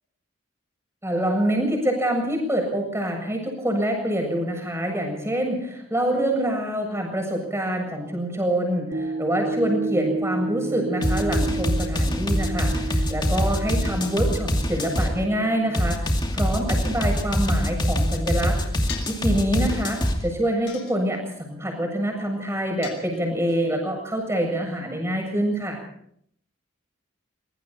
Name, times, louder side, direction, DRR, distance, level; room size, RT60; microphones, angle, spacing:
voice 1, 1.0-18.6 19.2-25.8, right 1 dB, 15° right, 2 dB, 7.6 m, -26 dB
sound 1, 8.9-17.3 17.8-17.9, right 3 dB, 55° right, 1.6 m, -32 dB
sound 2, 11.0-15.1 15.7-20.2, equal, 20° left, 2.6 m, -24 dB
sound 3, 18.9-19.3 20.7-21.4 22.8-23.6, left 8 dB, 60° left, 5.9 m, -39 dB
25.0 x 23.0 x 4.5 m, 0.68 s
head